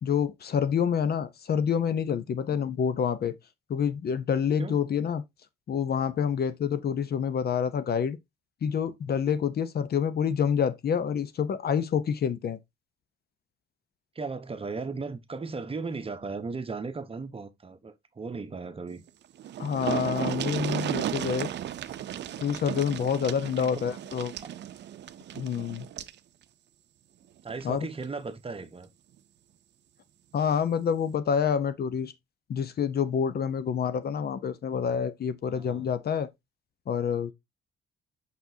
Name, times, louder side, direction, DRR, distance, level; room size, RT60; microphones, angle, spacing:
voice 1, 0.0-3.4 3.7-5.2 5.7-8.2 8.6-12.6 19.6-21.5 22.4-24.3 25.3-25.9 27.6-27.9 30.3-32.1 32.5-36.3 36.9-37.3, left 7 dB, 50° left, 0.8 m, -27 dB
voice 2, 14.1-19.0 23.6-23.8 24.4-24.5 27.4-28.9 35.4-35.9, right 4 dB, 30° right, 1.0 m, -36 dB
sound 1, 19.1-19.2 19.4-26.2 27.5-27.6 28.0-28.1, right 11 dB, 60° right, 0.6 m, -34 dB
6.0 x 5.9 x 2.7 m
cardioid pair, 90°, 20 cm